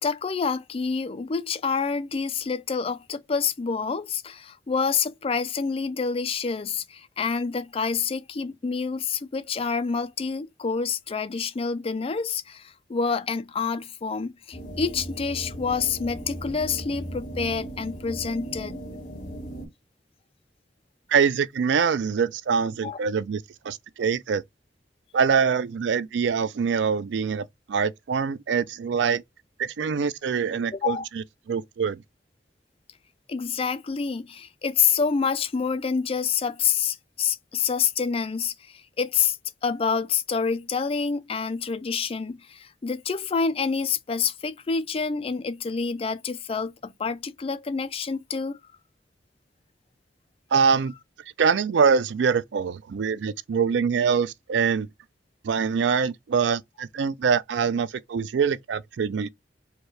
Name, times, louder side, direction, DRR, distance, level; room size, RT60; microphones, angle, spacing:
voice 1, 0.0-18.8 22.8-23.0 30.7-31.0 33.3-39.4 39.6-48.6, left 5 dB, 35° left, 0.4 m, -27 dB
sound 1, 14.5-19.7, right 1 dB, 50° left, 2.0 m, -37 dB
voice 2, 21.1-24.4 25.1-29.2 29.6-32.0 50.5-50.9 51.4-54.9 55.4-59.3, right 6 dB, 75° right, 0.4 m, -24 dB
4.4 x 2.3 x 3.1 m
head